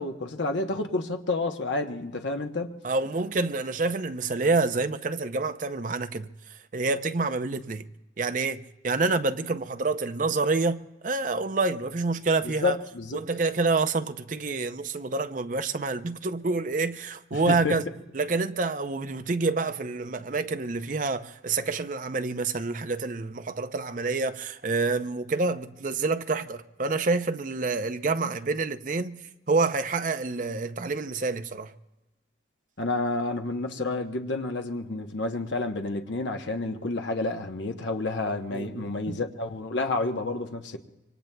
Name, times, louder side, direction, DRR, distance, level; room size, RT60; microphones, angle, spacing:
voice 1, 0.0-2.7 12.4-13.2 17.3-17.8 32.8-40.8, left 2 dB, 75° left, 0.9 m, -30 dB
voice 2, 2.8-7.8 8.2-12.8 13.1-17.8 18.1-31.7 38.5-39.2, right 3 dB, 45° right, 0.5 m, -28 dB
25.5 x 24.0 x 2.2 m
head